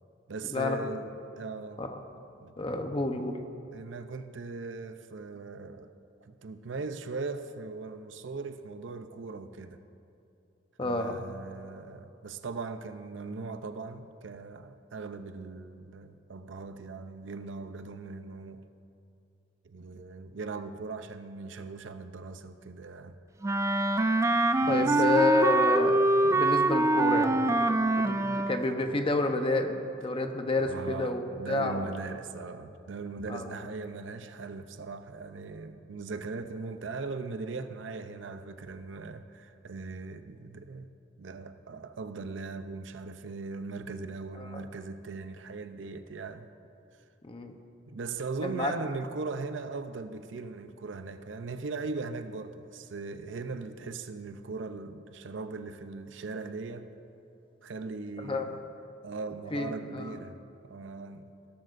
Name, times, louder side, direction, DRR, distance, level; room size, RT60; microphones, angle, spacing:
voice 1, 0.3-1.8 2.4-2.5 3.7-6.0 6.2-9.8 10.8-18.7 19.6-23.2 24.6-25.2 28.2-28.4 30.6-40.9 41.2-46.5 47.9-56.9 57.6-58.6 59.0-60.4 60.7-61.2, right 4 dB, 75° right, 0.6 m, -39 dB
voice 2, 2.6-3.4 10.8-11.2 24.7-26.0 26.3-29.7 30.0-31.9 33.3-33.5 44.4-44.6 47.3-47.5 48.4-48.7 58.2-58.4 59.5-60.2, left 2 dB, 30° left, 0.8 m, -29 dB
Wind instrument woodwind instrument, 23.4-28.7, right 2 dB, 15° right, 0.3 m, -24 dB
17.5 x 13.0 x 2.6 m
head